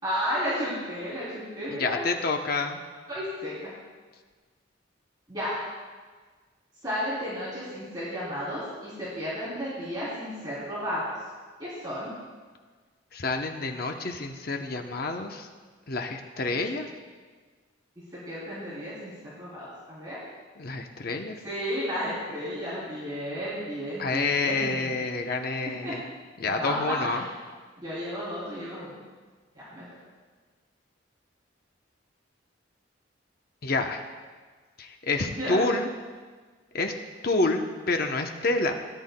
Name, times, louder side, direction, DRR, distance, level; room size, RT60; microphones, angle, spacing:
voice 1, 0.0-2.1 3.1-3.7 5.3-5.6 6.8-11.0 11.6-12.1 18.3-20.2 21.4-24.9 25.8-25.9 26.4-27.2 27.8-28.9 29.7-29.8 35.4-35.6, equal, 20° right, -10 dB, 3.1 m, -33 dB
voice 2, 1.7-2.8 13.1-15.5 15.9-16.9 20.6-21.4 24.0-26.0 26.4-27.2 33.6-34.0 34.8-35.9 36.7-36.9 37.2-38.7, left 3 dB, 50° left, 4 dB, 0.7 m, -28 dB
17.0 x 10.0 x 2.2 m, 1.5 s
head